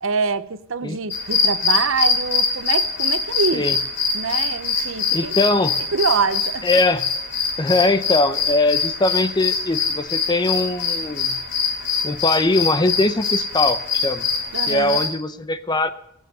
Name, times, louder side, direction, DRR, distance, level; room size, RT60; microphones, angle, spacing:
voice 1, 0.0-3.7 4.1-5.4 5.9-6.7 14.5-15.1, right 4 dB, 75° right, 0.7 m, -24 dB
sound 1, 1.1-15.1, left 5 dB, 55° left, 3.3 m, -23 dB
voice 2, 5.1-5.8 6.6-7.1 7.6-11.4 12.0-14.3 14.7-15.9, left 2 dB, 20° left, 0.7 m, -21 dB
18.0 x 7.4 x 8.0 m
head